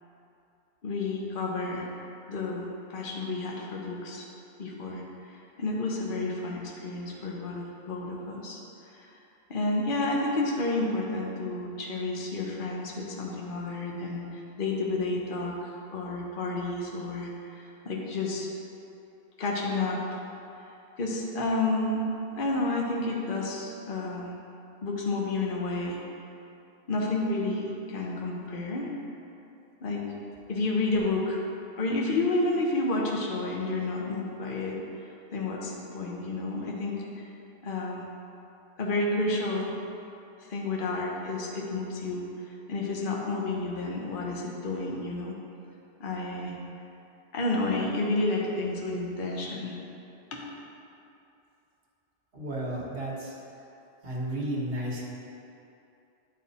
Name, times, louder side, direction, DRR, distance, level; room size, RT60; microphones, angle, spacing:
voice 1, 0.8-1.9 2.3-4.2 4.6-5.0 5.6-8.6 9.0-9.1 9.5-18.5 19.4-20.2 21.0-22.1 22.4-24.3 24.8-26.0 26.9-28.9 29.8-30.0 30.5-31.4 31.8-34.8 35.3-37.0 37.6-38.1 38.8-39.7 40.5-42.2 42.7-45.3 46.0-46.6 47.3-49.8 50.3-50.4, left 2 dB, 50° left, -2 dB, 1.1 m, -30 dB
voice 2, 52.3-53.5 54.0-55.0, right 1 dB, 60° right, -4 dB, 1.4 m, -33 dB
9.5 x 4.4 x 4.1 m, 2.8 s
omnidirectional pair, 1.1 m